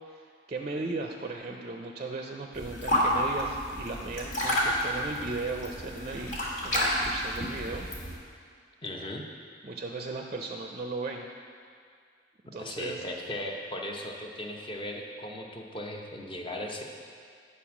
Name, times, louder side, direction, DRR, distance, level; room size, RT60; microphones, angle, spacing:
voice 1, 0.1-7.9 9.6-11.3 12.5-13.0, right 3 dB, 35° right, 2 dB, 0.4 m, -36 dB
sound 1, 2.5-8.2, left 1 dB, 75° left, 1.9 m, -30 dB
voice 2, 8.8-9.2 12.5-16.8, left 1 dB, 30° left, 1 dB, 0.8 m, -37 dB
8.9 x 4.3 x 5.9 m, 2.3 s
head